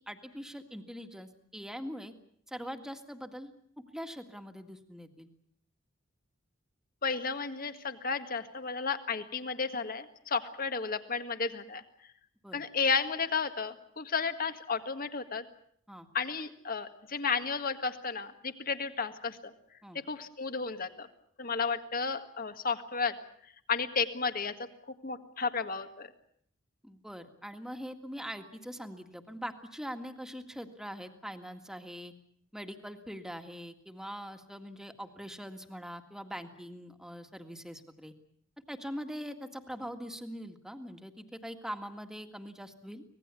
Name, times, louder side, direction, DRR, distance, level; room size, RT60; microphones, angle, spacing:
voice 1, 0.0-2.1 2.5-3.5 3.9-5.3 12.4-12.6 15.9-16.1 19.8-20.0 26.8-32.1 32.5-38.1 38.7-43.0, equal, 5° right, 6 dB, 1.9 m, -42 dB
voice 2, 7.0-11.8 12.5-15.4 16.1-19.5 20.1-21.1 21.4-23.1 23.7-24.5 24.9-26.1, left 5 dB, 45° left, 9 dB, 1.8 m, -33 dB
25.5 x 19.0 x 8.3 m, 0.65 s
head